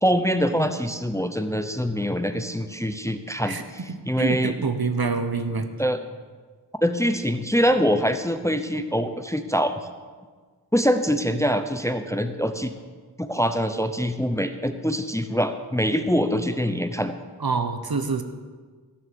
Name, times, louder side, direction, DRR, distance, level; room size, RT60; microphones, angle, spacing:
voice 1, 0.0-4.5 5.8-6.0 6.8-9.7 10.7-12.7 13.2-17.1, equal, 5° left, 8 dB, 0.7 m, -24 dB
voice 2, 4.2-5.7 17.4-18.2, right 4 dB, 60° right, 8 dB, 1.1 m, -26 dB
15.0 x 7.2 x 7.0 m, 1.5 s
wide cardioid pair, 65°, 41 cm